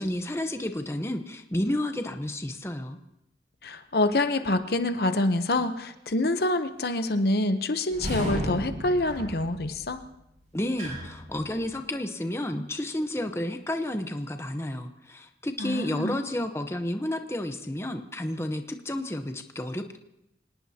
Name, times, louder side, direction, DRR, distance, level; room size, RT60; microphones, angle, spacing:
voice 1, 0.0-3.0 10.5-20.0, left 1 dB, 15° left, 6 dB, 0.9 m, -31 dB
voice 2, 3.6-10.0 15.6-16.2, left 2 dB, 60° left, 9 dB, 0.8 m, -26 dB
sound 1, 7.9-11.8, equal, 45° right, 7.1 m, -34 dB
26.0 x 19.0 x 2.9 m, 0.84 s
head